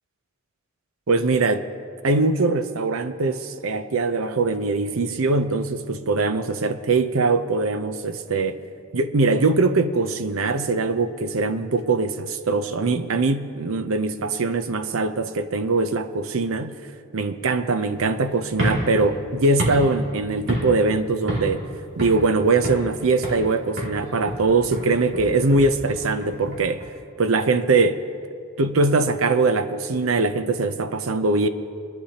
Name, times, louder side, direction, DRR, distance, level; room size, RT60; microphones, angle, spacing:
voice 1, 1.1-1.6 2.0-8.6 8.9-16.8 17.1-21.7 22.0-26.8 27.2-28.0 28.6-31.5, right 3 dB, 85° right, 0.6 m, -22 dB
sound 1, 18.5-20.9 21.3-21.6 22.0-22.9 23.2-23.5 23.8-26.9, right 1 dB, 60° right, 2.6 m, -29 dB
22.5 x 11.5 x 2.9 m
head